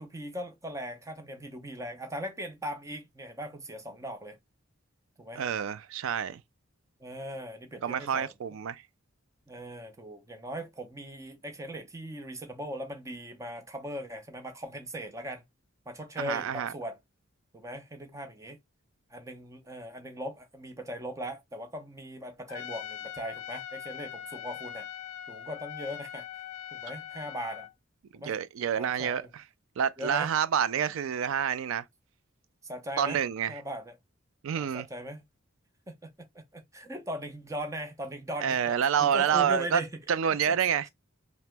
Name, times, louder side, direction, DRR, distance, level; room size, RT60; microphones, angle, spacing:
voice 1, 0.0-4.4 5.2-5.4 7.0-8.3 9.5-15.4 15.9-17.0 17.5-18.6 19.1-24.9 25.3-26.4 26.7-27.7 28.1-28.4 28.8-29.3 30.0-30.3 32.6-33.2 33.5-34.0 34.5-35.2 35.9-39.9 40.5-40.6, equal, 15° right, 0.5 m, -39 dB
voice 2, 5.4-6.4 7.8-8.8 16.2-16.7 28.1-29.4 29.8-31.9 33.0-33.6 34.4-34.9 38.4-39.8 40.1-40.9, right 8 dB, 70° right, 0.3 m, -28 dB
Trumpet, 22.5-27.7, left 10 dB, 85° left, 0.3 m, -41 dB
2.9 x 2.0 x 3.3 m
head